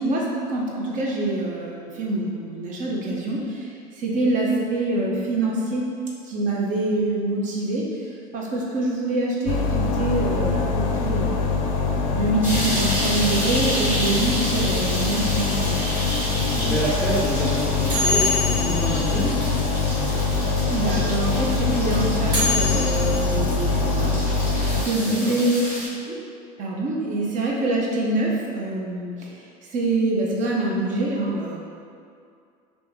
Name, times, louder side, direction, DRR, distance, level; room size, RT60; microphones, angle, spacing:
voice 1, 0.0-5.9 6.2-11.5 12.1-15.8 20.7-24.1 24.4-25.6 26.1-26.2 26.6-29.4 29.7-31.6, right 2 dB, 45° right, -3 dB, 0.7 m, -25 dB
sound 1, 9.4-24.8, left 4 dB, 70° left, 0.4 m, -24 dB
sound 2, 12.4-25.9, equal, 10° right, 1.3 m, -31 dB
sound 3, 15.4-20.3 20.6-20.7 20.8-23.1, left 2 dB, 75° right, 1.4 m, -26 dB
voice 2, 16.5-19.4 25.0-25.4, right 1 dB, 5° left, -6 dB, 0.5 m, -28 dB
3.0 x 2.6 x 3.6 m, 2.4 s
cardioid pair, 125°, 18 cm